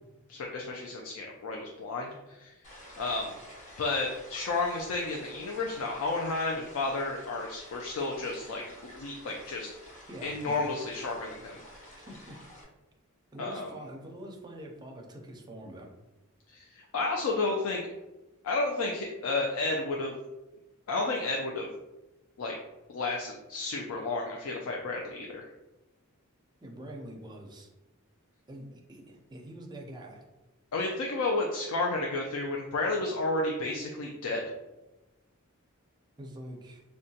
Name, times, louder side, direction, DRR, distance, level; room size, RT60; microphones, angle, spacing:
voice 1, 0.3-2.5 3.0-3.4 3.8-8.6 8.9-9.7 10.2-11.6 13.4-13.7 16.5-17.8 18.4-20.2 20.9-21.7 22.4-22.5 22.9-25.5 30.7-34.4, left 3 dB, 70° left, 0 dB, 0.4 m, -32 dB
sound 1, 2.6-12.6, left 1 dB, 35° left, 0.8 m, -50 dB
voice 2, 10.1-10.6 12.0-12.4 13.3-15.9 26.6-27.7 28.5-30.2 36.2-36.8, right 1 dB, 20° right, 1 dB, 0.4 m, -45 dB
3.7 x 2.1 x 2.7 m, 1.0 s
head